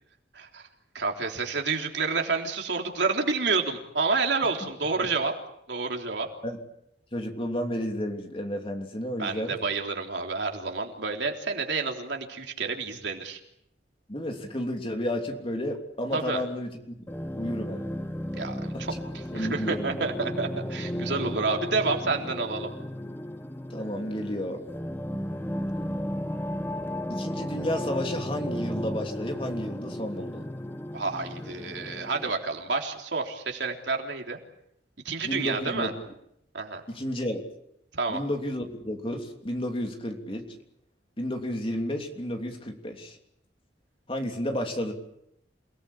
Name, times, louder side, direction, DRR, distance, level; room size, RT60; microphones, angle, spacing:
voice 1, 0.3-0.7 0.9-5.3 5.7-6.3 9.2-13.4 16.1-16.4 18.3-22.7 30.9-34.4 35.1-35.9 36.5-36.8 37.9-38.2, right 4 dB, 75° right, 2 dB, 3.6 m, -29 dB
voice 2, 7.1-9.6 14.1-16.7 17.3-17.9 18.7-19.0 19.3-20.0 23.7-24.6 27.1-30.4 35.2-35.9 36.9-37.5 38.1-40.4 41.2-43.2 44.1-44.9, left 1 dB, 30° left, 3 dB, 3.1 m, -32 dB
sound 1, 17.1-32.3, equal, 10° left, 1.1 m, -34 dB
28.5 x 18.5 x 8.6 m, 0.77 s
head